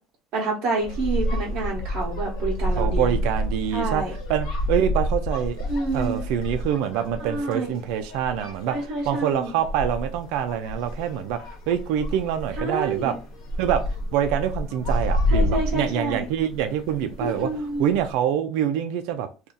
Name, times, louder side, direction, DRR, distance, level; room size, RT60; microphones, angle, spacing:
voice 1, 0.3-3.2 3.7-4.1 5.7-6.2 7.2-7.8 8.7-9.5 12.6-13.1 15.3-16.2 17.2-17.9, right 2 dB, 50° right, 0.9 m, -28 dB
sound 1, 0.8-18.1, equal, 60° left, 1.1 m, -29 dB
voice 2, 2.8-5.6 5.9-11.4 11.7-13.2 13.6-13.8 14.1-17.5 17.8-19.3, right 9 dB, 70° right, 0.5 m, -25 dB
2.7 x 2.4 x 3.7 m
cardioid pair, 160°, 0 cm